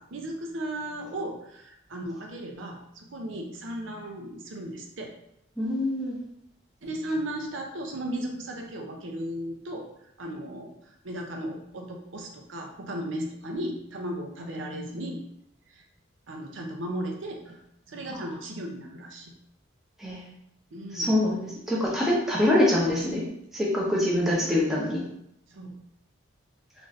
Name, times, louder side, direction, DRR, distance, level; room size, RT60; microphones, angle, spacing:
voice 1, 0.0-5.1 6.8-9.9 10.2-15.2 15.7-15.8 16.3-17.6 17.9-19.3 20.7-21.3 22.7-23.2 25.5-25.8, right 1 dB, 70° right, 1 dB, 0.6 m, -36 dB
voice 2, 5.6-6.2 20.0-20.2 20.9-23.3 23.5-25.0, left 1 dB, ahead, -5 dB, 0.8 m, -24 dB
3.9 x 2.5 x 3.1 m, 0.77 s
head